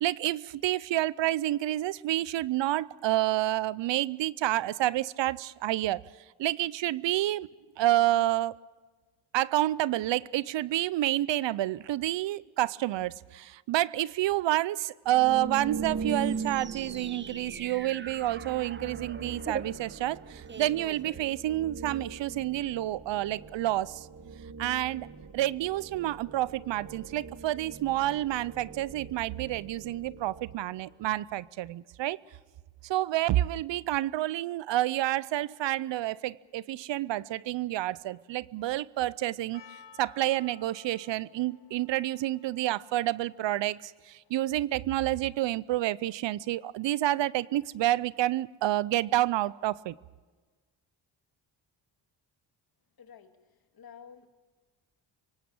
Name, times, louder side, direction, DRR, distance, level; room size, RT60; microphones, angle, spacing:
voice 1, 0.0-6.0 6.4-7.5 7.8-8.5 9.3-24.1 24.6-25.1 25.3-32.2 32.8-39.6 40.0-49.9, right 15 dB, 70° right, 0.6 m, -29 dB
sound 1, 15.1-30.8, right 5 dB, 40° right, 1.9 m, -41 dB
sound 2, 16.1-21.8, right 6 dB, 25° right, 0.7 m, -43 dB
Percussion, 39.5-44.8, left 7 dB, 65° left, 1.3 m, -57 dB
voice 2, 53.0-54.3, left 7 dB, 50° left, 2.1 m, -52 dB
25.5 x 18.0 x 7.2 m
cardioid pair, 70°, 47 cm